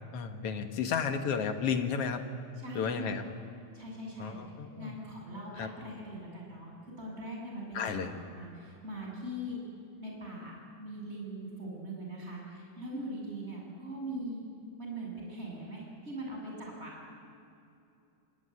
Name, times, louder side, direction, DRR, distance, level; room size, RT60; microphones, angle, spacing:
voice 1, 0.1-2.2 2.7-3.2 4.2-5.0 5.6-5.7 7.7-8.1, left 6 dB, 55° left, 7 dB, 2.1 m, -32 dB
voice 2, 2.6-3.2 3.7-4.4 4.8-6.7 7.0-9.6 10.0-14.4 14.8-16.9, right 1 dB, 20° right, -2 dB, 7.3 m, -41 dB
27.5 x 19.5 x 10.0 m, 2.7 s
omnidirectional pair, 3.5 m